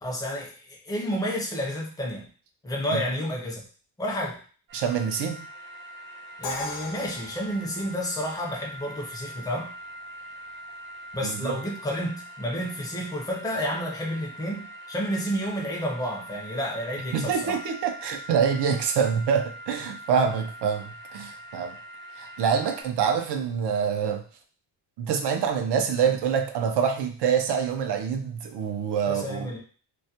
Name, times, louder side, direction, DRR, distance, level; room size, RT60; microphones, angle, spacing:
voice 1, 0.0-2.3 2.6-3.6 4.0-4.4 6.4-9.7 11.1-17.6 29.1-29.6, equal, 10° left, -1 dB, 0.5 m, -30 dB
sound 1, 4.7-22.8, right 1 dB, 50° right, 1.0 m, -43 dB
voice 2, 4.7-5.5 11.2-11.5 17.1-21.7 22.2-24.2 25.0-29.5, right 7 dB, 70° right, 5 dB, 0.5 m, -26 dB
Crash cymbal, 6.4-8.3, left 2 dB, 75° left, 0.6 m, -37 dB
2.3 x 2.1 x 2.7 m, 0.40 s
wide cardioid pair, 160°, 42 cm